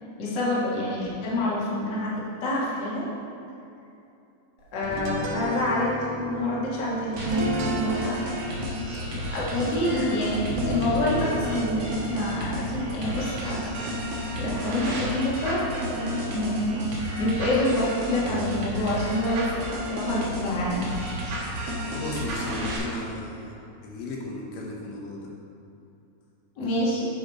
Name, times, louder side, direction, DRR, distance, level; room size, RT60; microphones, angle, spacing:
voice 1, 0.2-2.1 2.4-3.1 4.7-8.2 8.5-8.8 9.1-10.4 10.6-13.9 14.4-16.9 17.2-20.9 26.6-27.0, left 1 dB, 45° left, -6 dB, 1.5 m, -27 dB
sound 1, 4.8-15.5, equal, 70° right, 1.8 m, -35 dB
sound 2, 7.2-22.8, equal, 90° right, 3.3 m, -32 dB
voice 2, 21.9-23.6 23.8-25.3, left 2 dB, 80° left, -2 dB, 2.6 m, -35 dB
9.4 x 4.9 x 4.5 m, 2.8 s
omnidirectional pair, 4.1 m